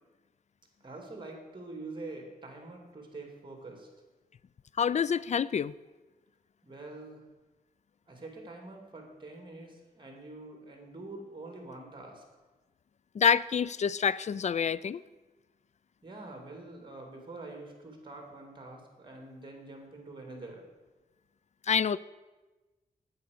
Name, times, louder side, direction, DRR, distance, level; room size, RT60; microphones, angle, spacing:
voice 1, 0.8-3.9 6.6-7.2 8.1-12.2 16.0-20.6, right 2 dB, 30° right, 2 dB, 3.0 m, -45 dB
voice 2, 4.8-5.7 13.2-15.0 21.7-22.0, left 7 dB, 50° left, 20 dB, 0.4 m, -27 dB
9.4 x 8.3 x 6.8 m, 1.2 s
cardioid pair, 75°, 16 cm